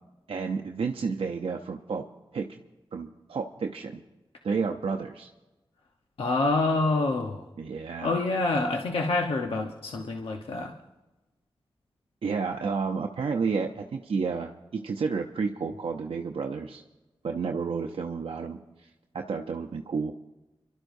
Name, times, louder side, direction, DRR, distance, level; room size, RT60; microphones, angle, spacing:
voice 1, 0.3-2.1 2.3-2.6 2.9-4.0 4.4-5.3 7.6-8.3 12.2-16.8 17.2-18.9 19.1-20.1, right 5 dB, 85° right, 3 dB, 0.7 m, -31 dB
voice 2, 6.2-7.5 8.0-10.7, left 3 dB, 90° left, 2 dB, 1.0 m, -27 dB
29.5 x 12.5 x 2.7 m, 1.1 s
wide cardioid pair, 75°, 9 cm